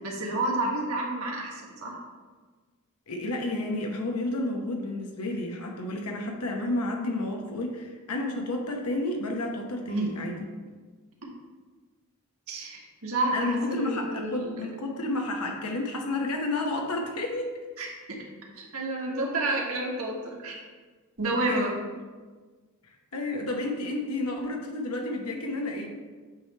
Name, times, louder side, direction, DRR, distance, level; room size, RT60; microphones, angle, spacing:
voice 1, 0.0-2.0 9.9-10.1 12.5-14.6 17.8-17.9 18.6-20.6 21.2-21.7, right 2 dB, 70° right, -2 dB, 1.6 m, -30 dB
voice 2, 3.1-10.4 13.3-17.5 21.5-21.6 22.9-25.9, left 2 dB, 90° left, 2 dB, 1.0 m, -31 dB
8.3 x 3.3 x 5.5 m, 1.4 s
head